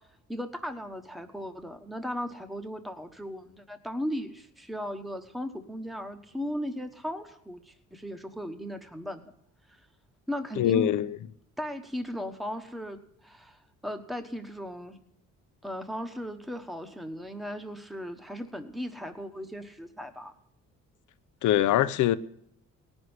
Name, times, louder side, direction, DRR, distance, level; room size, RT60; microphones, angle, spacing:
voice 1, 0.3-9.3 9.7-9.8 10.3-11.1 11.6-15.0 15.6-20.3, equal, ahead, 1.1 m, -37 dB
voice 2, 10.6-11.2 21.4-22.2, left 12 dB, 75° left, 0.7 m, -23 dB
17.5 x 6.3 x 9.5 m
cardioid pair, 90°, 30 cm